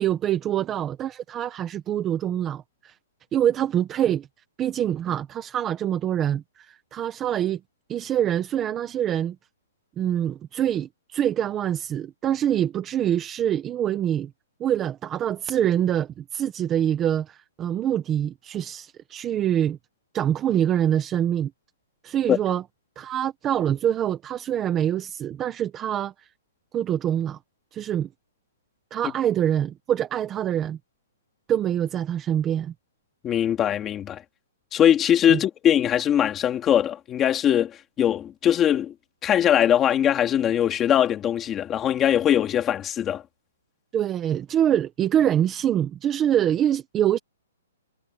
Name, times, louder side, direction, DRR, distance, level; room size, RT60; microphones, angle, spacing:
voice 1, 0.0-2.9 3.3-4.3 4.6-7.6 7.9-9.4 10.0-14.3 14.6-19.8 20.1-21.5 22.0-22.6 23.0-26.3 26.7-27.4 27.7-28.1 28.9-30.8 31.5-32.7 35.3-35.4 43.9-47.2, right 10 dB, 10° right, 1.0 m, -25 dB
voice 2, 33.2-34.2 34.7-38.9 39.2-43.2, left 10 dB, 10° left, 2.5 m, -21 dB
hypercardioid pair, 180°, 0 cm